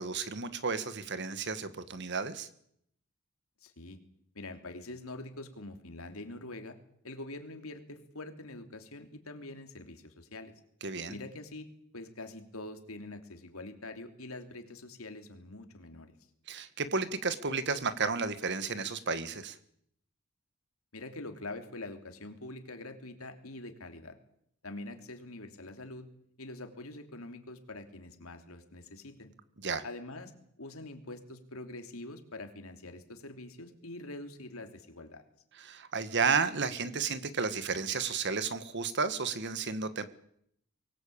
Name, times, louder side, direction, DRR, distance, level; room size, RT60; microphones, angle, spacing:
voice 1, 0.0-2.5 10.8-11.2 16.5-19.6 29.6-29.8 35.6-40.0, right 5 dB, 55° right, 12 dB, 1.6 m, -32 dB
voice 2, 3.6-4.0 4.3-6.8 7.0-10.5 11.1-11.7 11.9-16.1 20.9-24.1 24.6-26.1 26.4-29.3 29.8-30.3 30.6-35.2, left 2 dB, 90° left, 6 dB, 3.1 m, -44 dB
24.0 x 18.5 x 8.7 m, 0.72 s
head